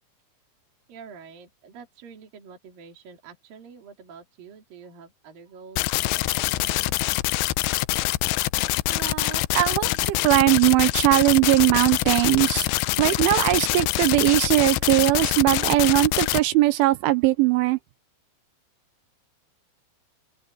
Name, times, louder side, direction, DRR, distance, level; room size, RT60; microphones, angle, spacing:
voice 1, 0.9-7.0, right 6 dB, 50° right, 4.7 m, -46 dB
sound 1, 5.8-16.4, left 19 dB, 85° left, 2.5 m, -25 dB
voice 2, 8.9-12.7 13.0-17.8, right 17 dB, 80° right, 3.3 m, -20 dB
open air
omnidirectional pair, 5.6 m